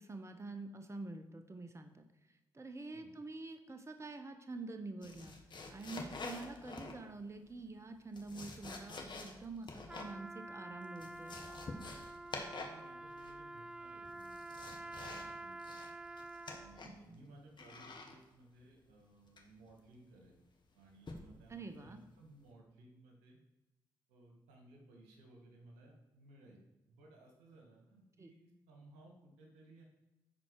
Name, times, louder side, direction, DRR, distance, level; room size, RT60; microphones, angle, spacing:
voice 1, 0.0-1.9 2.3-5.3 5.7-11.4 16.8-17.2 21.5-22.0 28.2-28.3, right 3 dB, 25° right, 7 dB, 1.0 m, -47 dB
sound 1, 5.0-7.2 7.9-10.2 10.5-10.6 10.8-12.8 13.1-13.6 14.0-15.3 15.6-17.1 17.6-18.2 19.4-19.7 21.1-21.4 21.9-22.1, left 3 dB, 45° left, 1.5 m, -48 dB
Trumpet, 9.8-16.9, right 2 dB, 10° right, 0.3 m, -48 dB
voice 2, 12.6-15.8 16.5-20.3 20.7-23.4 24.1-26.6 26.9-29.8, right 2 dB, 85° right, 1 dB, 1.6 m, -60 dB
10.5 x 4.3 x 4.7 m, 0.99 s
hypercardioid pair, 40°, 11 cm